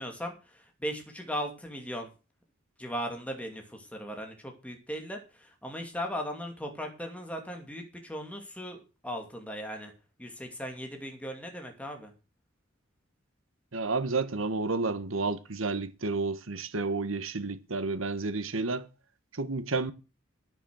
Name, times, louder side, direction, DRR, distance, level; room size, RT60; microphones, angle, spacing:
voice 1, 0.0-2.1 2.8-9.9 10.2-12.1, equal, 5° left, 2.5 m, -38 dB
voice 2, 13.7-18.9 19.3-19.9, right 3 dB, 85° right, 1.4 m, -31 dB
10.5 x 9.8 x 6.4 m
head